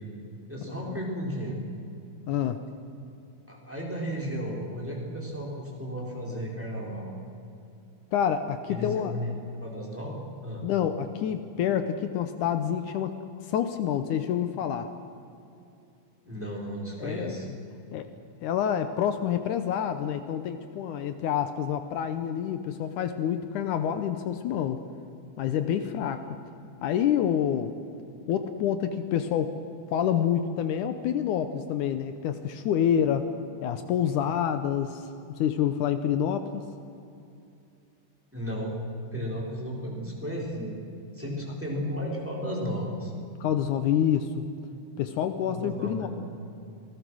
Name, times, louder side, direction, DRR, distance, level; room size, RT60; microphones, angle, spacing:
voice 1, 0.5-1.6 3.5-7.1 8.7-9.3 9.6-10.6 16.2-17.5 38.3-38.8 39.1-40.8 41.1-43.1 45.5-46.1, equal, 5° right, -2 dB, 4.0 m, -34 dB
voice 2, 2.3-2.6 8.1-9.1 10.6-13.1 13.5-14.9 17.0-17.4 17.9-18.1 18.4-24.8 25.4-26.3 26.8-27.7 28.3-29.6 29.9-33.3 33.6-35.0 35.4-36.6 43.4-44.5 45.0-46.1, left 9 dB, 75° left, 9 dB, 2.3 m, -27 dB
27.5 x 19.5 x 6.3 m, 2.6 s
omnidirectional pair, 3.7 m